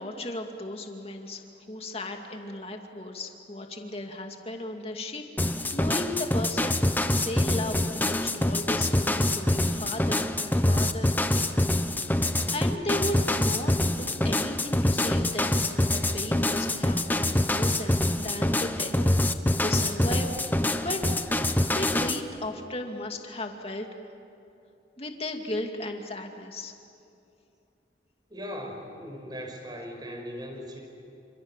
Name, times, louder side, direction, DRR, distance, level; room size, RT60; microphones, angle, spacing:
voice 1, 0.0-1.4 1.7-6.8 7.1-11.5 12.5-15.6 15.9-18.9 19.3-20.3 20.8-21.0 21.7-23.9 25.0-26.7, left 1 dB, 35° left, 3 dB, 2.4 m, -35 dB
sound 1, 5.4-22.2, left 1 dB, 10° left, 0.9 m, -25 dB
voice 2, 28.3-30.8, equal, 25° right, 2 dB, 5.3 m, -38 dB
28.5 x 27.0 x 7.5 m, 2.6 s
head